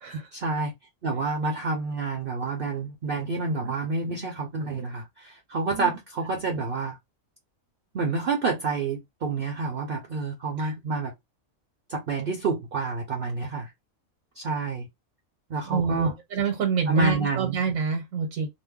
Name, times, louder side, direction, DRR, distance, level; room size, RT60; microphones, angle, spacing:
voice 1, 0.3-0.7 1.0-7.0 7.9-11.1 11.9-13.7 14.4-14.9 15.5-16.1 16.9-17.6, right 3 dB, 50° right, 0.7 m, -28 dB
voice 2, 15.6-18.5, right 6 dB, 80° right, 1.2 m, -27 dB
2.6 x 2.1 x 3.5 m
omnidirectional pair, 1.4 m